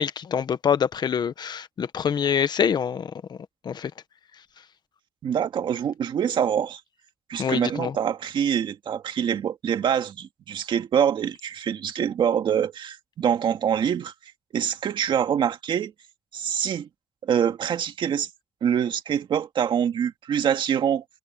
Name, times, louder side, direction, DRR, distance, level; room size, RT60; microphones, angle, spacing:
voice 1, 0.0-3.4 3.6-3.9 7.4-7.9, left 7 dB, 60° left, 1.1 m, -25 dB
voice 2, 5.2-6.8 7.3-14.1 14.5-15.9 16.3-16.9 17.2-18.3 18.6-21.0, right 8 dB, 80° right, 2.0 m, -25 dB
cardioid pair, 100°, 8 cm